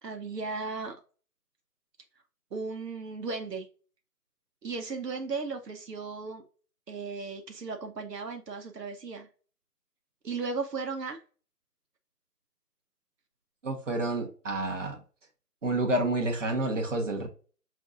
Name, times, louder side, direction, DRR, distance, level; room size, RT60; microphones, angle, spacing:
voice 1, 0.0-1.0 2.5-3.7 4.6-6.4 6.9-9.3 10.2-11.2, right 4 dB, 80° right, 1.0 m, -36 dB
voice 2, 13.6-15.0 15.6-17.3, right 2 dB, 50° right, 1.2 m, -29 dB
5.8 x 2.6 x 2.5 m
figure-of-eight pair, 175°, 48 cm